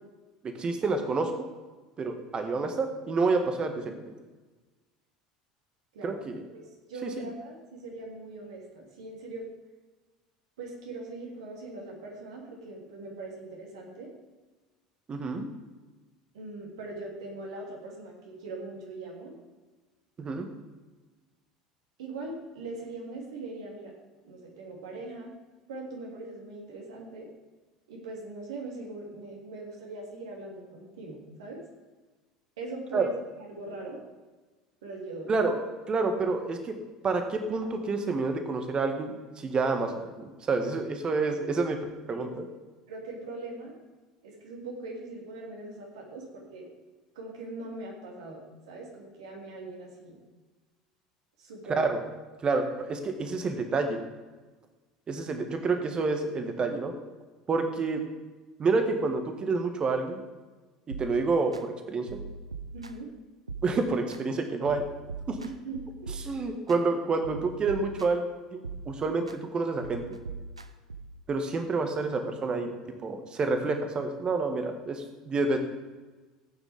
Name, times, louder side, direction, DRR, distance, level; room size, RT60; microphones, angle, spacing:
voice 1, 0.4-1.5 2.0-4.0 6.0-6.4 7.0-7.3 15.1-15.4 20.2-20.5 32.9-33.1 35.3-36.7 37.0-41.8 42.1-42.4 51.7-52.0 52.4-54.0 55.1-56.9 57.5-58.0 58.6-60.2 60.9-62.2 63.6-64.8 65.3-65.4 66.3-68.2 68.5-70.0 71.3-72.7 73.0-75.6, right 3 dB, 30° right, 5 dB, 1.7 m, -28 dB
voice 2, 6.5-9.4 10.6-14.1 16.3-19.3 22.0-23.9 24.2-25.3 25.7-27.3 27.9-31.6 32.6-34.0 34.8-35.3 42.1-42.3 42.9-43.7 44.2-46.7 47.1-50.2 51.4-51.9 62.7-63.1 65.4-66.6 72.6-72.7, right 2 dB, 65° right, -2 dB, 3.0 m, -41 dB
sound 1, 60.9-61.6 62.1-63.1 63.5-64.2 64.6-66.8 67.2-68.3 68.6-69.4 69.8-71.2, right 3 dB, 85° right, 0.6 m, -42 dB
15.0 x 9.0 x 3.6 m, 1.3 s
figure-of-eight pair, 70°, 3 cm